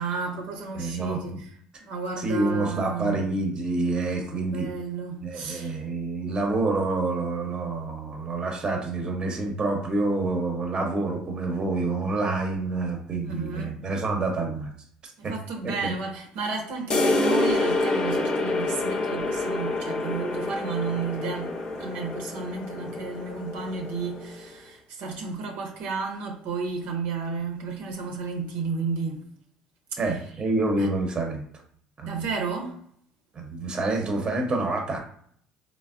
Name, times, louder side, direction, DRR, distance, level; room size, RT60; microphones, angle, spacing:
voice 1, 0.0-1.5 1.8-3.2 4.5-5.8 13.2-13.7 15.2-29.2 29.9-30.2 30.8-30.9 32.0-32.8, right 4 dB, 75° right, 0.6 m, -32 dB
voice 2, 0.7-1.4 2.2-4.7 5.2-14.7 15.2-15.3 15.6-15.9 30.0-31.4 32.0-32.2 33.3-35.0, right 2 dB, 35° right, 0.7 m, -27 dB
sound 1, 16.9-24.4, left 2 dB, 30° left, 0.5 m, -27 dB
3.3 x 2.0 x 2.4 m
supercardioid pair, 85°, 3 cm